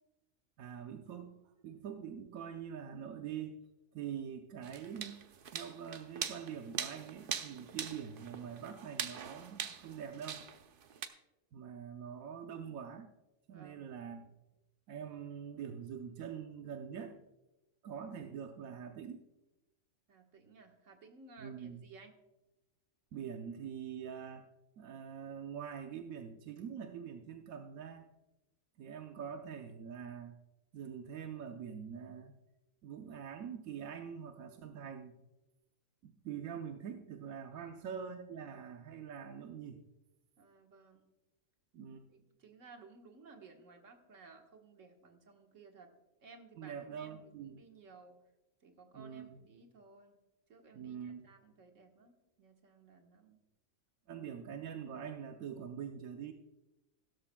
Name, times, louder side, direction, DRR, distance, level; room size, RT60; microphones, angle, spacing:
voice 1, 0.6-3.6 3.9-5.2 5.5-10.4 11.5-13.1 13.5-14.3 14.9-17.2 17.8-19.2 21.4-21.8 23.1-24.5 24.8-28.1 28.8-30.4 30.7-32.4 32.8-35.2 36.0-39.8 41.7-42.1 46.6-47.7 48.9-49.4 50.7-51.3 54.1-56.3, right 8 dB, 90° right, 5 dB, 1.2 m, -44 dB
sound 1, 4.6-11.1, right 7 dB, 50° right, 0.8 m, -42 dB
voice 2, 13.5-13.9 20.1-22.1 37.5-37.8 40.4-41.1 42.1-45.9 46.2-48.2 48.6-50.2 50.5-53.4, right 4 dB, 65° right, 3 dB, 1.7 m, -58 dB
16.0 x 13.0 x 2.2 m, 0.99 s
omnidirectional pair, 1.4 m